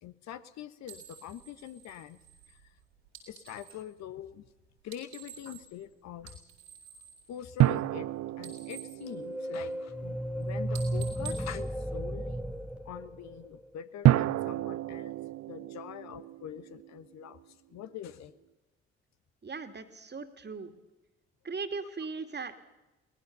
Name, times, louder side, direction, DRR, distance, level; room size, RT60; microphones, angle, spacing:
voice 1, 0.0-2.2 2.5-2.7 3.3-4.5 4.8-6.4 7.3-8.1 8.4-12.4 12.8-15.2 15.5-17.4 17.7-18.3, left 10 dB, 60° left, 12 dB, 1.3 m, -44 dB
sound 1, 0.8-3.9 4.8-5.9 6.2-8.0 8.3-9.9 10.2-10.4 10.7-12.5, right 8 dB, 80° right, 4.0 m, -50 dB
sound 2, 7.6-10.4 14.0-17.4, right 14 dB, 55° right, 0.7 m, -29 dB
sound 3, 9.0-13.7, right 1 dB, 5° right, 1.5 m, -34 dB
voice 2, 19.4-20.8 21.4-22.6, right 4 dB, 35° right, 9 dB, 2.5 m, -38 dB
23.0 x 19.0 x 6.9 m, 1.0 s
figure-of-eight pair, 45°, 31 cm